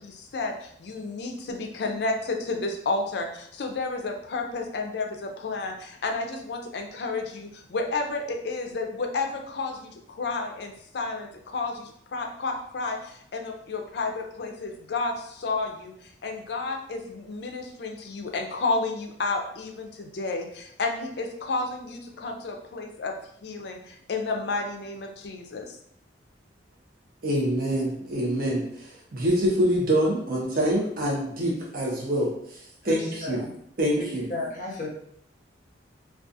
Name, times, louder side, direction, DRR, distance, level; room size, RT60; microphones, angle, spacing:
voice 1, 0.0-23.1 23.4-25.8, left 3 dB, 60° left, 3 dB, 0.4 m, -31 dB
voice 2, 27.2-33.4 33.8-34.3, equal, 50° right, -3 dB, 0.5 m, -25 dB
voice 3, 32.8-33.5 34.3-34.9, left 2 dB, 40° left, -3 dB, 0.7 m, -34 dB
2.4 x 2.3 x 2.6 m, 0.69 s
head